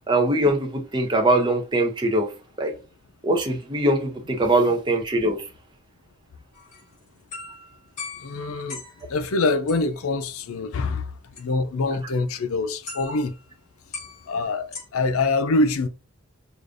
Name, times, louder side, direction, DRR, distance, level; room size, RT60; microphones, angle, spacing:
voice 1, 0.1-2.3 2.6-2.7 3.2-5.4, right 1 dB, 20° right, 0.7 m, -22 dB
sound 1, 6.5-9.1 9.7-10.0 11.3-11.4 12.9-13.4 13.9-14.9, left 4 dB, 35° left, 2.0 m, -39 dB
voice 2, 8.2-8.8 9.1-11.1 11.4-13.4 14.3-15.9, left 3 dB, 90° left, 0.5 m, -24 dB
5.0 x 2.4 x 2.5 m
head